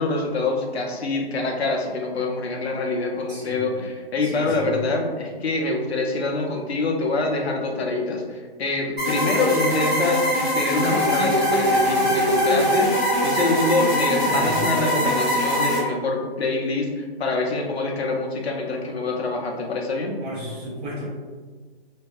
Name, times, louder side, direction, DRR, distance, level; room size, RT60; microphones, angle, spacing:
voice 1, 0.0-20.2, left 2 dB, 85° left, 1 dB, 0.6 m, -25 dB
voice 2, 3.3-3.6 4.2-4.7 13.8-13.9 14.2-14.6 20.2-21.0, equal, 45° right, -8 dB, 0.7 m, -34 dB
sound 1, 9.0-15.8, equal, 5° right, 0.4 m, -22 dB
2.6 x 2.2 x 2.3 m, 1.4 s
hypercardioid pair, 145°, 31 cm